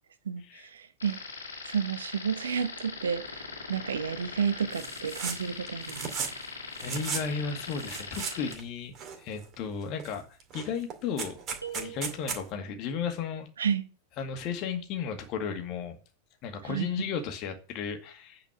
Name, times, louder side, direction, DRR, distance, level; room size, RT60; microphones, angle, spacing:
voice 1, 0.2-1.2 1.6-6.1 13.6-13.8 16.6-17.1, right 7 dB, 65° right, 1.0 m, -31 dB
sound 1, 1.0-8.6, left 4 dB, 75° left, 2.0 m, -41 dB
sound 2, 4.7-5.4 5.7-6.4 6.8-7.3 7.7-8.6 9.0-9.6 10.0-10.1 10.4-12.4, right 6 dB, 30° right, 2.2 m, -36 dB
voice 2, 6.8-10.3 10.5-11.4 11.7-13.5 14.2-16.0 16.4-18.4, left 6 dB, 40° left, 2.1 m, -34 dB
sound 3, 11.6-12.8, right 9 dB, 85° right, 1.7 m, -43 dB
9.2 x 5.1 x 7.3 m
figure-of-eight pair, 90°, 0 cm